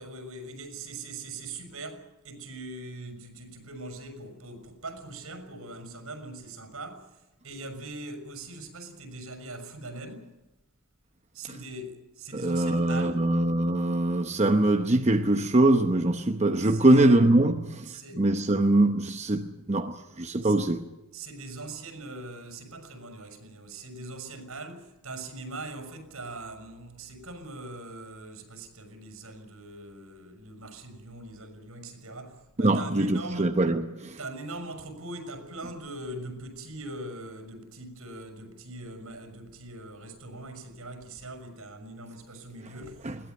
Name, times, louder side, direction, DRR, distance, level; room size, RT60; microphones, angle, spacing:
voice 1, 0.0-7.1 7.4-10.3 11.3-13.3 16.6-17.2 17.9-18.3 20.4-20.6 21.1-33.6 34.2-43.0, right 2 dB, 80° right, 6.2 m, -41 dB
voice 2, 12.3-17.9 18.2-20.8 32.6-34.2 43.0-43.1, right 1 dB, 30° right, 0.9 m, -23 dB
21.0 x 17.5 x 9.3 m
head